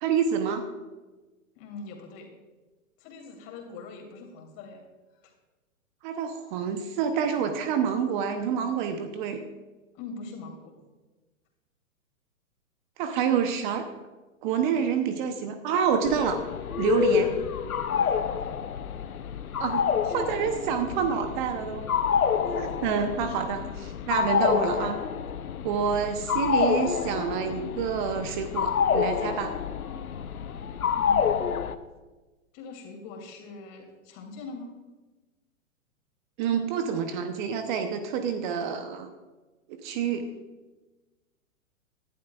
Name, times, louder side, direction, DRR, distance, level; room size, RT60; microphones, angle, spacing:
voice 1, 0.0-0.6 6.0-9.4 13.0-13.8 14.4-16.4 16.8-17.3 19.6-21.9 22.3-25.0 25.6-29.6 36.4-39.1 39.7-40.3, right 7 dB, 35° right, 8 dB, 0.9 m, -28 dB
voice 2, 1.6-2.3 3.0-4.9 5.2-5.3 9.9-10.8 17.9-18.6 30.9-31.6 32.5-34.8, left 4 dB, 35° left, 2 dB, 2.9 m, -42 dB
sound 1, 16.0-31.8, left 7 dB, 85° left, 0.8 m, -28 dB
18.0 x 11.5 x 2.4 m, 1.2 s
hypercardioid pair, 120°, 42 cm